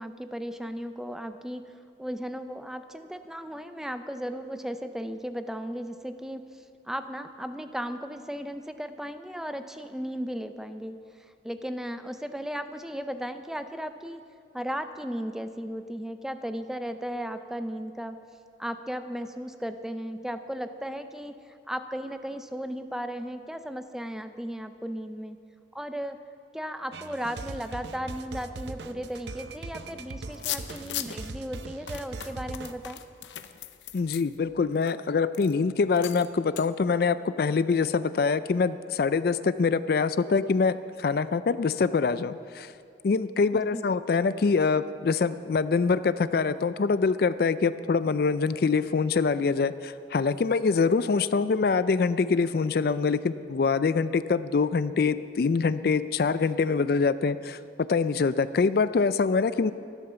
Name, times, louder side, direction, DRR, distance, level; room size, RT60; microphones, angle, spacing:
voice 1, 0.0-1.7 2.0-14.2 14.5-18.2 18.6-25.4 25.7-26.2 26.5-33.0 43.5-43.9, equal, 5° right, 9 dB, 0.5 m, -36 dB
sound 1, 26.9-32.7, right 3 dB, 75° right, 0.7 m, -40 dB
sound 2, 30.3-31.3 31.9-34.9 35.3-35.5 36.0-36.3 36.6-36.7, left 11 dB, 85° left, 0.7 m, -38 dB
voice 2, 33.9-42.7 43.0-57.6 57.9-59.7, left 4 dB, 55° left, 14 dB, 0.4 m, -24 dB
13.5 x 11.5 x 6.9 m, 2.4 s
head